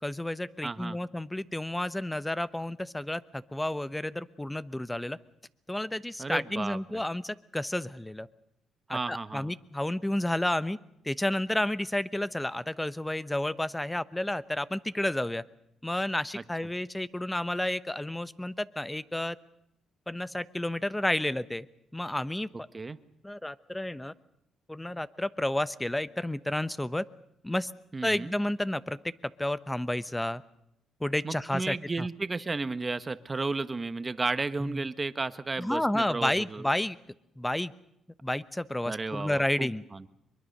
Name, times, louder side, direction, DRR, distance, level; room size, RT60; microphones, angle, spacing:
voice 1, 0.0-5.2 5.7-8.3 8.9-10.8 11.0-15.4 15.8-19.4 20.1-21.7 21.9-22.5 23.2-24.1 24.7-27.0 27.4-27.7 28.0-29.0 29.4-30.4 31.0-32.1 34.6-34.8 35.6-37.0 37.4-37.7 38.2-39.8, left 1 dB, 10° left, 15 dB, 0.9 m, -31 dB
voice 2, 0.6-1.0 6.2-7.0 8.9-9.5 22.7-23.0 27.9-28.3 31.2-36.7 38.8-40.0, right 3 dB, 25° right, 13 dB, 1.2 m, -33 dB
24.0 x 22.5 x 6.7 m, 0.81 s
cardioid pair, 90°, 0 cm